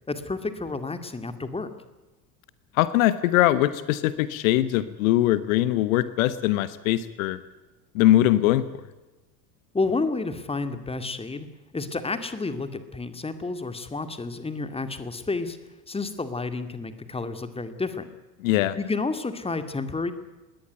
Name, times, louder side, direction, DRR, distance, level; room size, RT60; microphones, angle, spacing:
voice 1, 0.1-1.7 9.7-11.5 11.7-15.6 15.9-18.1 18.8-20.1, left 3 dB, 10° left, 10 dB, 2.2 m, -30 dB
voice 2, 2.7-7.4 7.9-8.8 18.4-18.8, left 14 dB, 55° left, 15 dB, 1.2 m, -22 dB
21.5 x 18.0 x 9.3 m, 1.1 s
figure-of-eight pair, 75°, 49 cm